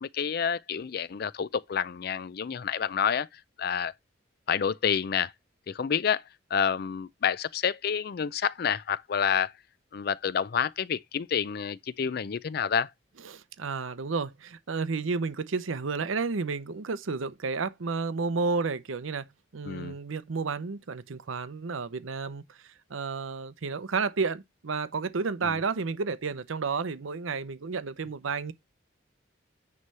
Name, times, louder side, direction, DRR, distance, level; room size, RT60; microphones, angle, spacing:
voice 1, 0.0-3.3 3.6-3.9 4.5-5.3 5.7-6.2 6.5-9.5 9.9-12.9 19.7-19.9 25.4-25.5, left 7 dB, 50° left, 0.4 m, -28 dB
voice 2, 13.2-19.3 19.5-22.6 22.9-28.5, right 4 dB, 85° right, 0.7 m, -31 dB
9.6 x 3.2 x 5.4 m
head